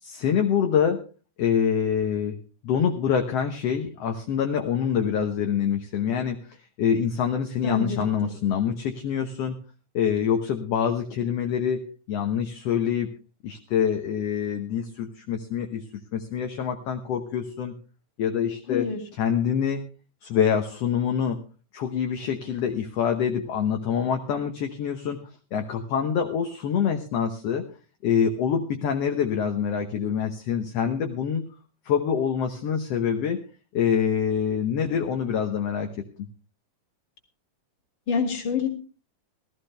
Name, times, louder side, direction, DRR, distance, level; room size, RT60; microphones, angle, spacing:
voice 1, 0.0-1.0 1.4-2.4 2.6-9.6 9.9-11.8 12.1-13.1 13.4-15.8 16.1-17.7 18.2-19.8 20.2-21.4 21.7-25.2 25.5-27.6 28.0-31.5 31.9-33.4 33.7-35.9, left 7 dB, 60° left, 5 dB, 1.8 m, -25 dB
voice 2, 7.6-8.3 18.7-19.0 38.1-38.7, left 5 dB, 40° left, 6 dB, 2.8 m, -27 dB
17.5 x 14.0 x 3.3 m, 0.34 s
omnidirectional pair, 3.7 m